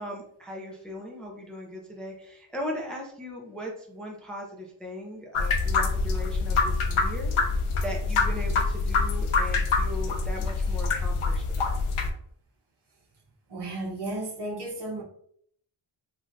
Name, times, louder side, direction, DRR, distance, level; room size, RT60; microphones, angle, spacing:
voice 1, 0.0-11.7, equal, ahead, 0.4 m, -38 dB
sound 1, 5.3-12.1, left 4 dB, 90° left, 0.6 m, -25 dB
voice 2, 13.5-15.0, right 2 dB, 55° right, 1.0 m, -33 dB
3.2 x 2.5 x 2.5 m
wide cardioid pair, 115°, 49 cm